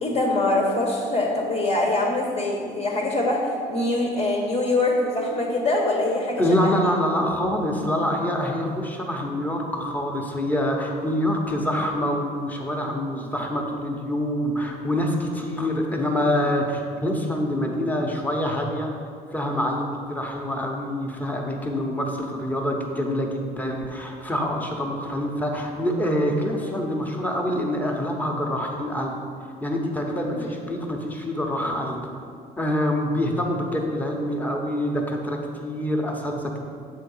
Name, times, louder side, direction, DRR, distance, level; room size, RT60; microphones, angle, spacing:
voice 1, 0.0-3.4 3.7-6.4 30.3-30.5, left 2 dB, 40° left, -1 dB, 1.1 m, -23 dB
voice 2, 6.4-18.9 19.3-29.1 29.6-32.0 32.6-36.6, left 1 dB, 10° left, 1 dB, 0.9 m, -26 dB
7.5 x 3.8 x 5.5 m, 2.3 s
cardioid pair, 110°, 17 cm